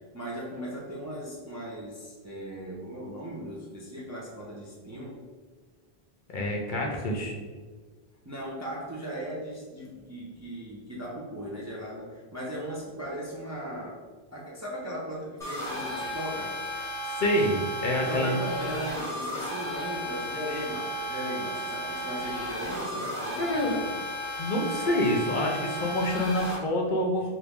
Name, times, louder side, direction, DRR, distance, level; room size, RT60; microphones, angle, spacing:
voice 1, 0.1-5.2 6.8-7.5 8.2-14.0 14.3-16.6 18.1-24.0 27.2-27.3, right 1 dB, 25° right, -5 dB, 0.4 m, -38 dB
voice 2, 6.3-7.3 17.1-18.4 23.4-23.8 24.4-27.3, left 1 dB, 60° left, 0 dB, 0.6 m, -27 dB
sound 1, 15.4-26.6, equal, 5° left, 1.1 m, -34 dB
3.0 x 2.5 x 3.4 m, 1.5 s
omnidirectional pair, 1.1 m